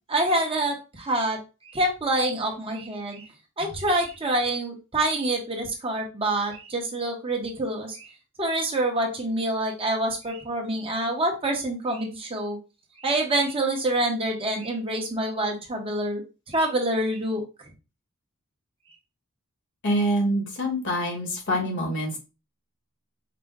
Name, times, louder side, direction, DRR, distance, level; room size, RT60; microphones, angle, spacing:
voice 1, 0.1-1.4 1.6-3.3 3.6-8.1 8.4-12.6 13.0-16.2 16.5-17.4, right 1 dB, 25° right, 1 dB, 0.9 m, -26 dB
voice 2, 19.8-22.2, equal, 60° left, 1 dB, 1.3 m, -25 dB
5.0 x 2.2 x 3.5 m, 0.30 s
head